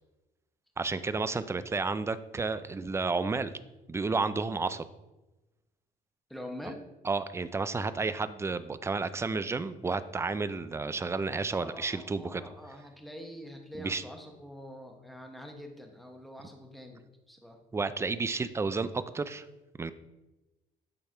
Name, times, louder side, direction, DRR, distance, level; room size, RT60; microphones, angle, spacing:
voice 1, 0.8-3.5 3.9-4.9 7.1-12.4 13.8-14.0 17.7-19.5 19.8-19.9, right 4 dB, 15° right, 13 dB, 0.3 m, -31 dB
voice 2, 6.3-6.8 11.5-17.6, equal, ahead, 2 dB, 1.1 m, -45 dB
8.8 x 3.4 x 4.5 m, 1.0 s
cardioid pair, 110°, 17 cm